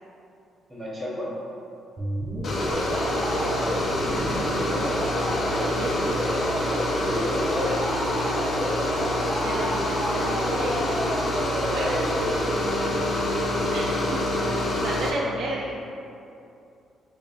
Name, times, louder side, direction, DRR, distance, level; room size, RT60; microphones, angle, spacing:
voice 1, 0.7-1.3 7.1-7.8, left 2 dB, 15° right, -6 dB, 1.1 m, -32 dB
sound 1, 2.0-14.8, equal, 35° right, 0.8 m, -31 dB
sound 2, 2.4-15.1, left 1 dB, 55° left, 0.6 m, -26 dB
voice 2, 3.2-6.2 9.4-11.1 11.4-12.0 13.7-14.0 14.5-15.8, right 2 dB, 70° right, -3 dB, 0.4 m, -34 dB
5.1 x 2.3 x 2.5 m, 2.6 s
cardioid pair, 90°, 0 cm